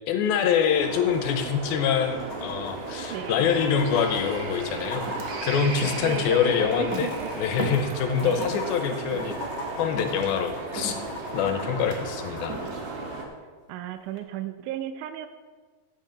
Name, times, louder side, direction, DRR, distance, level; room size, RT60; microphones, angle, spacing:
voice 1, 0.1-5.1 5.4-7.1 7.4-9.4 9.8-11.0 11.3-12.6, left 7 dB, 80° left, 6 dB, 2.7 m, -25 dB
sound 1, 0.7-13.2, right 4 dB, 65° right, 2.9 m, -35 dB
sound 2, 1.2-1.3 1.5-1.6 2.2-12.5 14.2-14.3, left 2 dB, 50° left, 2.1 m, -39 dB
voice 2, 3.1-3.4 6.0-7.3 8.2-8.6 13.7-15.3, right 10 dB, 85° right, 9 dB, 1.8 m, -35 dB
sound 3, 4.5-8.7 9.1-13.1, right 1 dB, 50° right, 1.0 m, -37 dB
14.0 x 9.5 x 3.9 m, 1.5 s
omnidirectional pair, 4.4 m